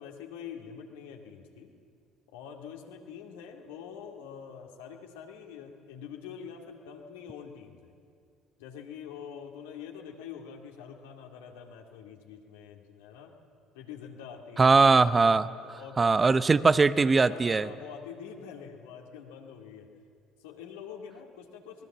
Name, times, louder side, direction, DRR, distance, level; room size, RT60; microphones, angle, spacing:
voice 1, 0.0-1.7 2.3-7.9 8.6-13.3 13.7-14.9 15.5-16.1 17.2-19.9 20.4-21.9, left 7 dB, 75° left, 3 dB, 2.3 m, -45 dB
voice 2, 14.6-15.5 16.0-17.7, right 4 dB, 25° right, 15 dB, 0.8 m, -21 dB
25.0 x 19.5 x 7.3 m, 2.3 s
hypercardioid pair, 55°, 0 cm